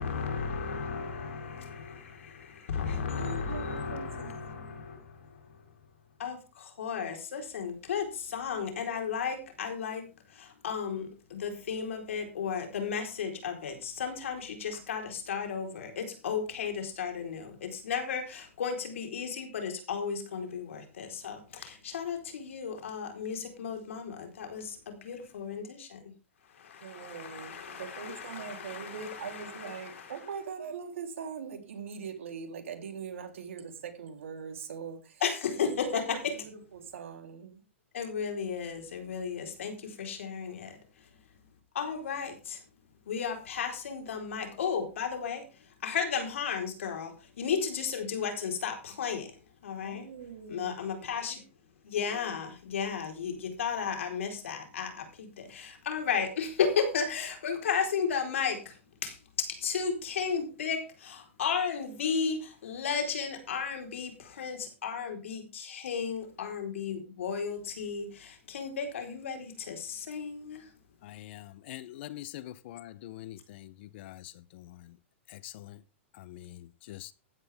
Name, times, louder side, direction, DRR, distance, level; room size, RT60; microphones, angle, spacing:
voice 1, 0.0-5.6 6.2-26.0 26.5-30.1 35.2-36.4 37.9-40.8 41.7-42.6 43.1-49.3 49.6-50.1 50.5-51.4 51.8-70.7, left 6 dB, 80° left, 4.3 m, -34 dB
voice 2, 3.2-4.8 26.8-35.2 35.6-37.6 49.7-51.2, right 6 dB, 80° right, 3.6 m, -42 dB
voice 3, 71.0-74.2 75.4-75.8 76.2-76.6 76.9-77.1, left 14 dB, 55° left, 0.8 m, -44 dB
15.0 x 11.0 x 3.6 m
hypercardioid pair, 130°, 7 cm